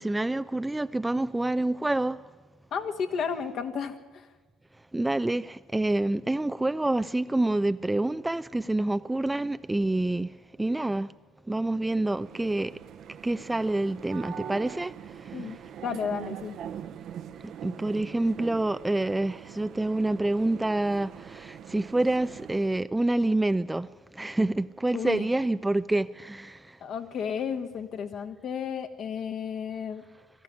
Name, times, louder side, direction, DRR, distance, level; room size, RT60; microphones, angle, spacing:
voice 1, 0.0-2.2 4.9-11.1 11.5-12.8 13.2-14.9 15.2-15.5 17.4-26.8, right 2 dB, 10° right, 0.5 m, -27 dB
voice 2, 2.7-4.3 15.3-15.6 15.8-16.6 24.9-25.3 26.8-30.0, left 7 dB, 55° left, 1.8 m, -32 dB
sound 1, 12.0-22.8, right 9 dB, 55° right, 0.9 m, -42 dB
20.0 x 13.5 x 9.8 m
hypercardioid pair, 60°, 0 cm